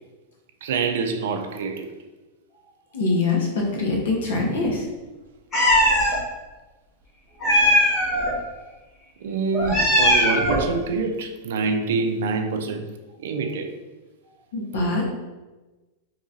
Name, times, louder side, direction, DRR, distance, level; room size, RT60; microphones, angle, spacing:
voice 1, 0.6-1.9 9.2-12.9 13.2-13.7, right 4 dB, 75° right, 0.4 m, -26 dB
voice 2, 2.9-4.8 14.5-15.1, left 3 dB, 75° left, 1.0 m, -23 dB
Meow, 5.5-6.2 7.4-8.3 9.5-10.7, equal, 15° left, 0.9 m, -19 dB
3.9 x 2.9 x 2.6 m
supercardioid pair, 175°, 0 cm